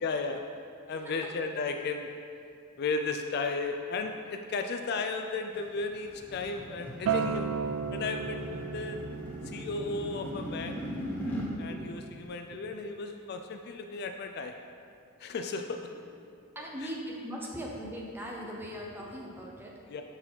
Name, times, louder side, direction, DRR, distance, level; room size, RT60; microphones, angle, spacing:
voice 1, 0.0-0.4 0.9-2.1 2.8-7.5 7.9-9.0 9.5-10.8 11.3-14.5 15.2-15.9 19.9-20.0, left 4 dB, 50° left, 5 dB, 0.3 m, -34 dB
voice 2, 0.9-1.3 11.2-11.3 11.7-12.0 12.5-12.7 16.5-19.8, equal, 10° right, -2 dB, 0.8 m, -40 dB
sound 1, 5.5-11.5, equal, 10° left, 1.0 m, -40 dB
Acoustic guitar, 7.1-12.3, right 6 dB, 70° right, 0.3 m, -35 dB
6.8 x 5.9 x 3.9 m, 2.4 s
head